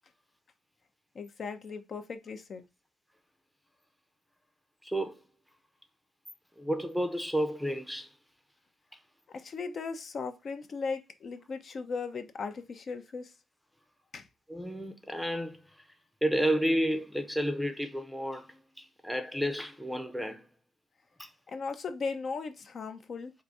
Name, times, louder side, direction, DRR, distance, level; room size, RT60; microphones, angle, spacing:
voice 1, 1.1-2.6 9.3-13.3 14.1-14.3 21.5-23.3, left 4 dB, 50° left, 0.7 m, -37 dB
voice 2, 4.8-5.2 6.6-8.1 14.5-15.9 16.2-20.5 21.2-21.3, equal, ahead, 0.7 m, -31 dB
4.0 x 2.6 x 4.7 m
cardioid pair, 90°, 0 cm